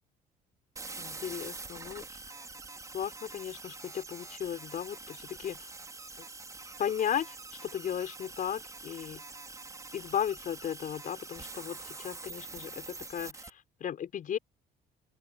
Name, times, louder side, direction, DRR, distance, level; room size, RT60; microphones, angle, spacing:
sound 1, 0.8-13.5, right 3 dB, 20° right, 4.3 m, -45 dB
voice 1, 1.0-2.2 2.9-5.7 6.8-7.3 7.6-9.2 9.9-14.4, left 9 dB, 55° left, 5.1 m, -35 dB
cardioid pair, 110°, 17 cm